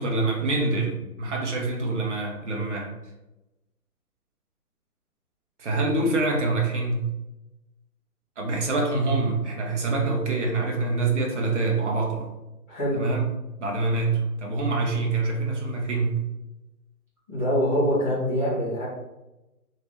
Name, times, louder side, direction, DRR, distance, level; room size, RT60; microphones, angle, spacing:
voice 1, 0.0-2.9 5.6-7.1 8.4-12.3 12.9-13.2 13.6-16.2, right 3 dB, 50° right, 1 dB, 1.0 m, -25 dB
voice 2, 12.7-13.0 17.3-18.8, equal, 10° left, -19 dB, 0.7 m, -24 dB
3.2 x 2.8 x 3.4 m, 0.99 s
hypercardioid pair, 165°, 47 cm